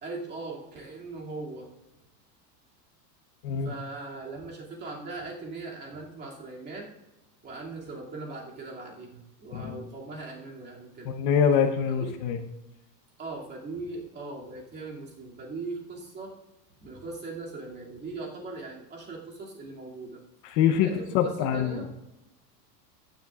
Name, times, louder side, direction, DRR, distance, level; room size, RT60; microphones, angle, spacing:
voice 1, 0.0-1.7 3.6-6.9 7.4-11.1 12.0-12.1 13.2-16.3 16.8-20.2 20.8-21.9, right 3 dB, 20° right, -2 dB, 2.5 m, -39 dB
voice 2, 3.4-3.7 9.5-9.9 11.0-12.4 20.4-20.9 21.1-21.9, left 8 dB, 40° left, 7 dB, 0.9 m, -25 dB
15.0 x 10.5 x 2.4 m, 0.97 s
supercardioid pair, 155°, 50 cm